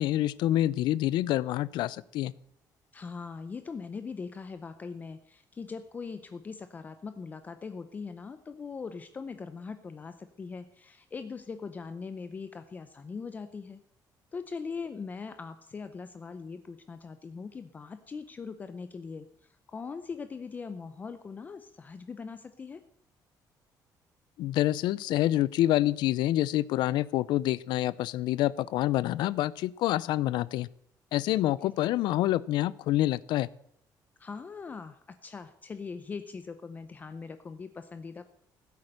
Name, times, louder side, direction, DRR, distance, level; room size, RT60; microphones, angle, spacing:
voice 1, 0.0-2.3 24.4-30.7 31.1-33.5, left 14 dB, 90° left, 21 dB, 0.5 m, -27 dB
voice 2, 2.9-13.8 14.3-22.8 31.4-31.9 34.2-38.2, left 5 dB, 20° left, 10 dB, 0.6 m, -41 dB
15.5 x 8.5 x 6.6 m, 0.70 s
cardioid pair, 170°, 8 cm